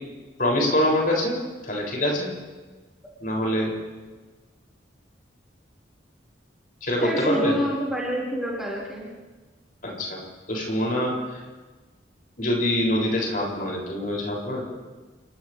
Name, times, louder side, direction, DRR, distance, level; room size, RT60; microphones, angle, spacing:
voice 1, 0.4-2.3 3.2-3.7 6.8-7.5 9.8-10.2 10.5-11.4 12.4-14.7, left 1 dB, 50° left, -2 dB, 7.8 m, -25 dB
voice 2, 7.0-9.0, equal, ahead, -6 dB, 5.9 m, -27 dB
29.5 x 25.5 x 3.7 m, 1.3 s
head